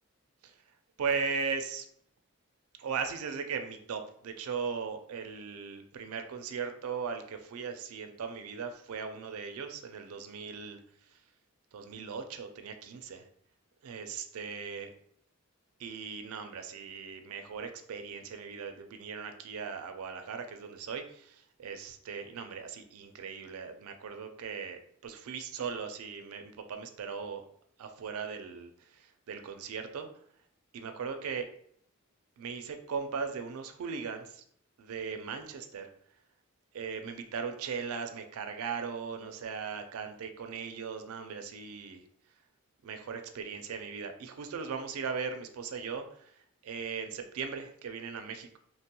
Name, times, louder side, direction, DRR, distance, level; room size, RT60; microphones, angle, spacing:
voice 1, 1.0-1.9 2.8-10.8 11.1-11.2 11.7-13.3 13.8-14.9 15.8-27.4 27.8-30.1 30.7-31.5 32.4-34.4 34.8-35.9 36.7-42.0 42.8-48.6, right 6 dB, 75° right, 6 dB, 0.4 m, -38 dB
2.9 x 2.2 x 2.9 m, 0.65 s
head